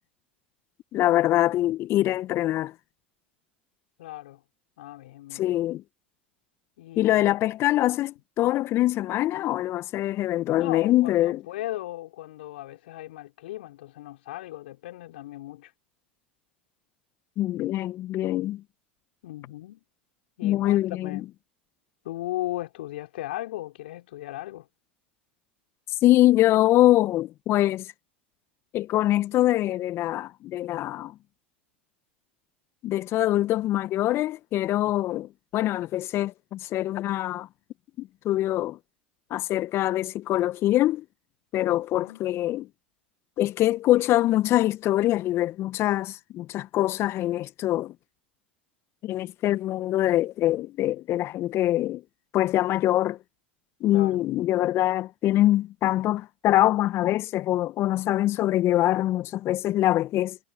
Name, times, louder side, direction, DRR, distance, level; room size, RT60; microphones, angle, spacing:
voice 1, 0.9-2.7 5.3-5.8 7.0-11.4 17.4-18.6 20.4-21.2 26.0-27.9 28.7-31.1 32.8-37.5 38.0-38.8 39.3-41.0 41.5-42.6 43.4-47.9 49.0-52.0 52.3-53.2 53.8-60.4, left 14 dB, 45° left, 1.6 m, -24 dB
voice 2, 4.0-4.4 4.8-5.4 6.8-7.2 8.4-8.6 10.5-15.7 19.2-19.8 20.4-21.2 22.0-24.7 34.8-35.3 41.6-42.2 53.9-54.2, left 15 dB, 65° left, 4.9 m, -37 dB
figure-of-eight pair, 80°, 6 cm